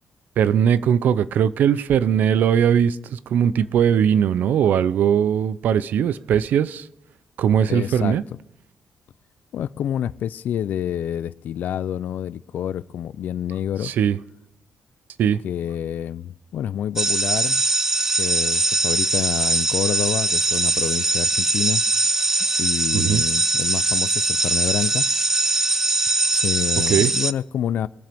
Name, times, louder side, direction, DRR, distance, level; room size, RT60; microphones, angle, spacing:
voice 1, 0.4-6.8 7.4-8.2 13.8-14.2 15.2-15.4 22.9-23.2 26.9-27.1, right 8 dB, 70° right, 0.5 m, -19 dB
voice 2, 7.7-8.2 9.5-13.9 15.4-17.6 18.2-21.8 22.6-25.1 26.3-27.9, left 10 dB, 65° left, 0.4 m, -28 dB
sound 1, 17.0-27.3, right 2 dB, 15° right, 0.4 m, -21 dB
22.0 x 7.6 x 3.5 m
cardioid pair, 140°, 3 cm